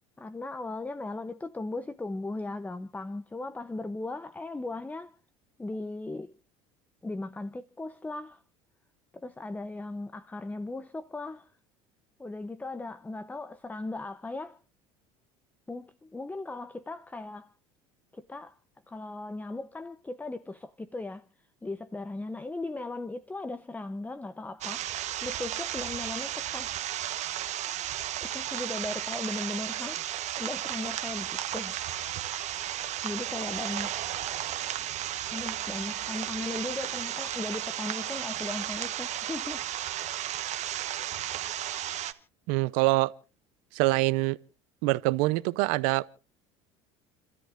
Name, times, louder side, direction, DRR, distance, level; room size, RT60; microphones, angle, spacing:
voice 1, 0.2-5.1 5.6-6.3 7.0-8.4 9.1-11.5 12.2-14.6 15.7-17.5 18.1-18.6 18.9-24.9 25.2-26.8 28.2-30.1 30.4-31.8 33.0-34.0 35.3-39.7, left 2 dB, 10° left, 0.8 m, -37 dB
sound 1, 24.6-42.1, right 12 dB, 50° right, 1.2 m, -34 dB
voice 2, 42.5-43.1 43.7-44.4 44.8-46.1, right 21 dB, 70° right, 0.7 m, -25 dB
30.0 x 13.0 x 2.6 m
supercardioid pair, 85°, 15 cm